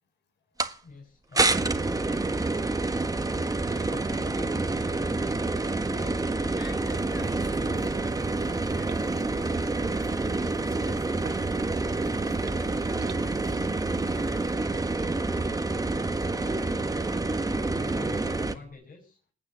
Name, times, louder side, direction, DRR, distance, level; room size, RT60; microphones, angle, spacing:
sound 1, 0.6-0.7 1.4-18.6, right 3 dB, 15° right, 1.5 m, -28 dB
voice 1, 0.8-2.5 3.6-6.5 7.1-8.0 17.7-19.2, left 4 dB, 45° left, -1 dB, 6.4 m, -47 dB
voice 2, 6.6-7.9 8.3-14.7, left 6 dB, 60° left, 5 dB, 5.8 m, -51 dB
sound 2, 7.0-14.6, right 8 dB, 55° right, 1.7 m, -44 dB
sound 3, 13.5-18.7, left 2 dB, 85° left, 6.1 m, -48 dB
19.0 x 8.9 x 8.1 m, 0.43 s
cardioid pair, 90°, 20 cm